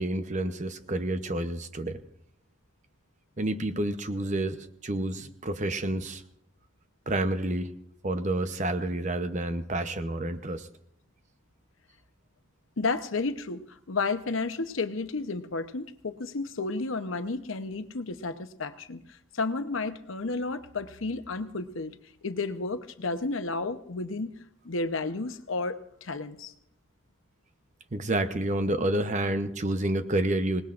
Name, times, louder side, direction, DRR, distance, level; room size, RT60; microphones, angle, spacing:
voice 1, 0.0-2.0 3.4-6.2 7.1-7.7 8.0-10.7 27.9-30.6, right 1 dB, 35° right, 9 dB, 0.8 m, -29 dB
voice 2, 12.8-19.0 19.3-21.9 22.2-24.4 24.6-26.5, left 3 dB, 80° left, 9 dB, 0.9 m, -32 dB
26.5 x 18.5 x 2.5 m, 0.73 s
head